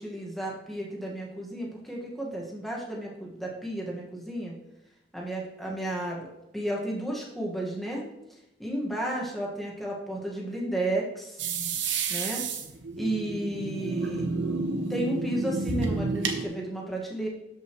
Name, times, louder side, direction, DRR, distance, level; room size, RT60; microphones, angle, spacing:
voice 1, 0.0-4.6 5.1-8.0 8.6-11.4 12.1-12.4 13.0-14.3 14.9-17.3, right 1 dB, ahead, -3 dB, 1.7 m, -33 dB
sound 1, 11.4-16.4, right 4 dB, 80° right, 1.0 m, -30 dB
13.0 x 5.5 x 3.2 m, 0.91 s
head